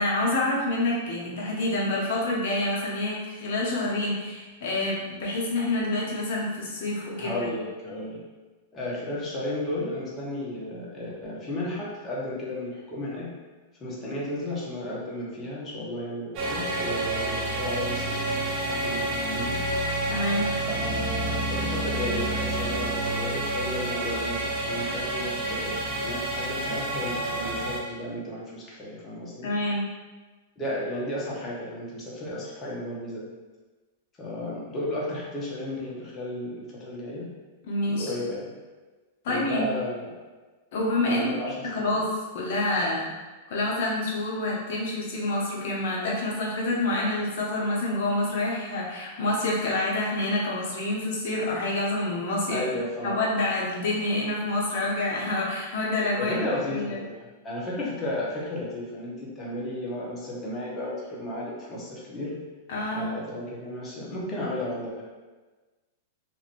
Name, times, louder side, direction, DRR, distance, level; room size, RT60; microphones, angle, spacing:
voice 1, 0.0-7.5 20.1-20.5 29.4-29.9 37.7-38.1 39.2-39.7 40.7-41.4 41.6-43.1 43.5-52.6 53.0-56.4 56.7-57.0 62.7-63.1, left 2 dB, 65° left, -4 dB, 0.8 m, -27 dB
voice 2, 7.2-8.2 8.7-13.3 13.8-19.6 20.6-29.5 30.6-33.3 34.2-37.3 37.8-38.5 39.3-40.1 41.0-42.0 52.5-53.2 56.2-62.4 62.9-65.0, left 1 dB, 25° left, -6 dB, 0.9 m, -33 dB
sound 1, 16.4-27.8, right 1 dB, 45° right, 0.6 m, -29 dB
2.9 x 2.5 x 2.6 m, 1.3 s
hypercardioid pair, 110°, 0 cm